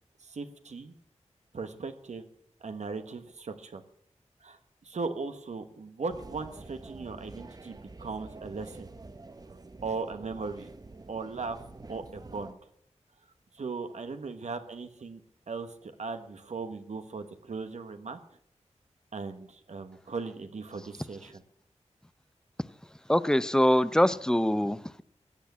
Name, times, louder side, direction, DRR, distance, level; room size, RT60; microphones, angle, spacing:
voice 1, 0.2-0.9 1.5-2.2 2.6-3.8 4.4-8.9 9.8-10.7 11.1-11.6 11.9-12.6 13.5-15.2 15.5-18.2 19.1-21.4, right 4 dB, 75° right, 8 dB, 1.2 m, -38 dB
sound 1, 6.1-12.5, right 3 dB, 30° right, 0.8 m, -47 dB
voice 2, 23.1-25.0, left 1 dB, 5° left, 15 dB, 0.6 m, -24 dB
16.0 x 8.3 x 8.3 m, 0.69 s
wide cardioid pair, 95°, 12 cm